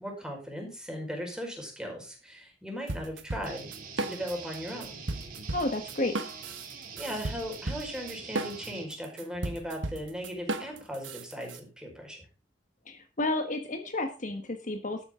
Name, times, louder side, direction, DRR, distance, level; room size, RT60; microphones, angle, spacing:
voice 1, 0.0-5.0 7.0-12.3, equal, 5° right, 0 dB, 5.0 m, -38 dB
sound 1, 2.9-4.6 4.8-11.6, right 2 dB, 90° right, 1.4 m, -35 dB
sound 2, 3.5-8.8, right 5 dB, 50° right, 3.0 m, -44 dB
voice 2, 5.5-6.1 12.9-15.0, left 2 dB, 45° left, 6 dB, 1.4 m, -31 dB
12.5 x 10.0 x 3.8 m, 0.33 s
head